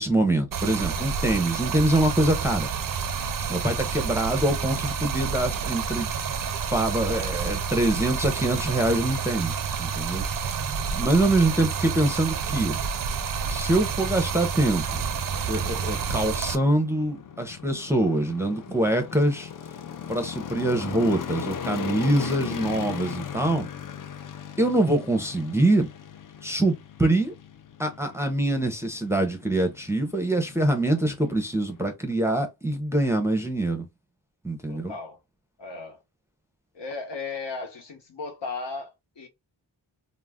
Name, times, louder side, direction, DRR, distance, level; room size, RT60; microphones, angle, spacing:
voice 1, 0.0-2.7 3.5-6.1 6.7-10.2 10.9-12.8 13.5-14.8 15.5-19.5 20.1-23.7 24.6-25.9 26.4-27.3 27.8-33.9 34.4-34.9, right 1 dB, 5° right, 0.5 m, -24 dB
Stream, 0.5-16.6, right 6 dB, 50° right, 0.5 m, -29 dB
sound 1, 12.8-31.9, left 7 dB, 50° left, 0.4 m, -39 dB
voice 2, 34.7-35.2 35.6-36.0 36.7-39.3, left 4 dB, 70° left, 0.9 m, -36 dB
2.4 x 2.1 x 3.4 m
wide cardioid pair, 110°, 43 cm